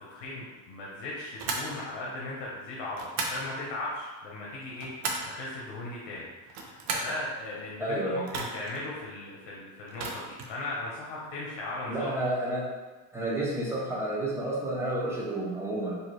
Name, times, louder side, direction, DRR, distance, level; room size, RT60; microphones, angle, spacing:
voice 1, 0.1-4.9 5.2-12.1, left 2 dB, 70° left, -5 dB, 0.9 m, -37 dB
sound 1, 1.4-1.7 2.9-3.4 4.5-5.3 6.4-7.2 8.2-8.8 9.9-10.5, right 3 dB, 65° right, 0.7 m, -34 dB
voice 2, 7.8-8.2 11.9-12.7 13.1-16.0, right 1 dB, 5° right, -6 dB, 0.7 m, -30 dB
4.5 x 2.7 x 3.1 m, 1.2 s
cardioid pair, 170°, 43 cm